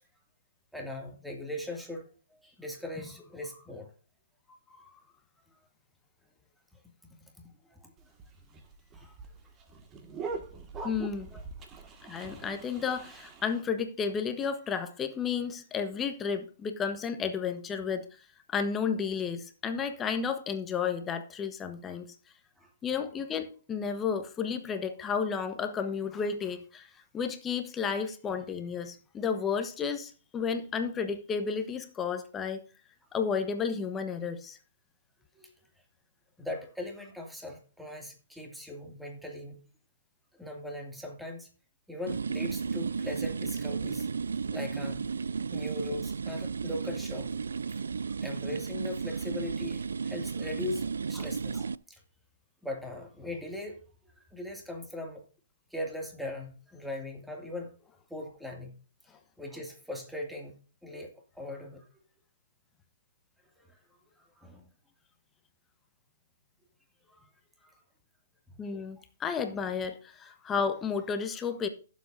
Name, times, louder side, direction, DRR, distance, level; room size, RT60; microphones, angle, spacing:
voice 1, 0.7-2.1 2.4-3.9 7.7-7.9 8.9-9.2 11.3-11.4 22.6-22.7 35.3-35.5 36.4-39.6 40.4-41.5 41.9-44.1 44.5-45.0 45.5-47.3 48.2-52.0 52.6-53.8 54.3-55.2 55.7-57.7 58.1-58.8 59.4-60.5 60.8-61.8 63.7-63.8 64.2-64.7 67.1-67.3 67.6-67.7 68.5-68.6, left 1 dB, ahead, 2.4 m, -40 dB
sound 1, 8.0-13.6, right 4 dB, 20° right, 1.9 m, -42 dB
voice 2, 10.8-11.3 12.0-18.1 18.5-22.1 22.8-26.9 27.1-32.6 33.1-34.6 68.6-71.7, left 6 dB, 15° left, 1.2 m, -32 dB
sound 2, 42.1-51.8, right 5 dB, 75° right, 0.4 m, -34 dB
16.0 x 7.5 x 2.7 m
figure-of-eight pair, 125°, 0 cm